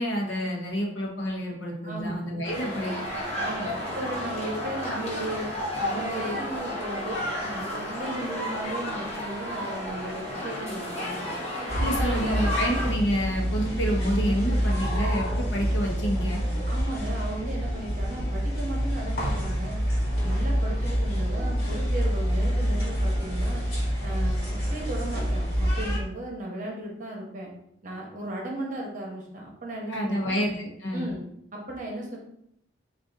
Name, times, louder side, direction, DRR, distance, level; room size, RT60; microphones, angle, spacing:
voice 1, 0.0-2.9 11.8-16.4 29.9-31.1, equal, 70° left, 0 dB, 0.8 m, -28 dB
voice 2, 1.8-2.2 3.4-5.5 5.8-11.4 11.8-12.3 16.7-19.8 20.2-23.6 24.0-27.5 27.8-30.3 30.9-31.2 31.5-32.2, right 1 dB, 40° right, -2 dB, 0.9 m, -36 dB
sound 1, 2.4-12.9, left 1 dB, 35° left, 0.8 m, -32 dB
sound 2, 11.7-26.0, equal, 55° left, 1.4 m, -27 dB
3.7 x 2.5 x 3.6 m, 0.75 s
head